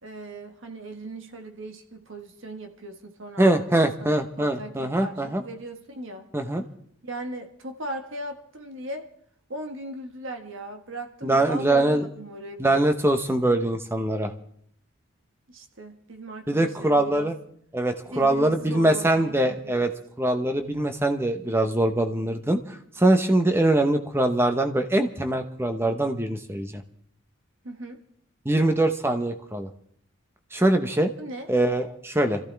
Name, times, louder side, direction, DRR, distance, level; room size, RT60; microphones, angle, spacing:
voice 1, 0.0-3.5 3.8-6.3 7.0-9.1 9.5-12.8 15.5-17.4 18.1-19.9 27.6-28.0 31.2-31.5, right 1 dB, 60° right, 5 dB, 1.5 m, -38 dB
voice 2, 3.4-5.4 6.3-6.6 11.2-12.0 12.6-14.3 16.5-17.4 17.7-19.9 20.2-26.8 28.4-29.7 30.5-31.1 31.5-32.4, right 1 dB, 10° right, 6 dB, 0.9 m, -23 dB
25.5 x 14.5 x 3.4 m, 0.64 s
head